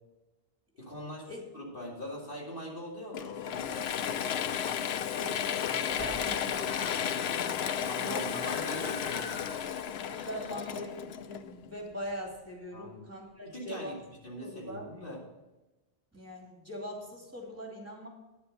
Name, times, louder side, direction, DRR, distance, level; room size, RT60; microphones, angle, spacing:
voice 1, 0.8-4.4 7.8-9.3 12.7-13.0 13.4-15.2, equal, 55° left, -3 dB, 2.7 m, -42 dB
Screaming, 3.0-3.9 4.2-4.3 4.6-4.7 5.0-5.5 5.8-12.7 13.5-13.6, equal, 20° left, 3.9 m, -47 dB
Mechanisms / Drill, 3.1-11.7, left 9 dB, 80° left, 0.8 m, -33 dB
voice 2, 5.1-7.6 8.0-8.4 10.2-14.0 14.4-14.9 16.1-18.1, equal, 15° right, -1 dB, 2.7 m, -42 dB
10.0 x 6.9 x 6.6 m, 1.1 s
omnidirectional pair, 1.1 m